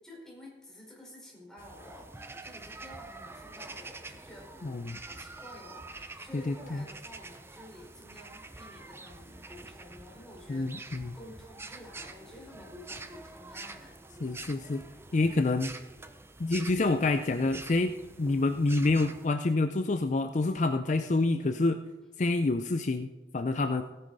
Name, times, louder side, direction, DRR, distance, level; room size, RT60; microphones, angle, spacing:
voice 1, 0.0-13.9, left 1 dB, 5° left, -4 dB, 4.6 m, -50 dB
sound 1, 1.6-19.3, right 3 dB, 15° right, 0.6 m, -46 dB
voice 2, 4.6-5.0 6.3-6.8 10.5-11.2 14.2-14.8 15.1-15.7 16.4-21.8 22.2-23.8, left 2 dB, 40° left, 8 dB, 0.5 m, -27 dB
17.0 x 10.0 x 4.0 m, 1.2 s
head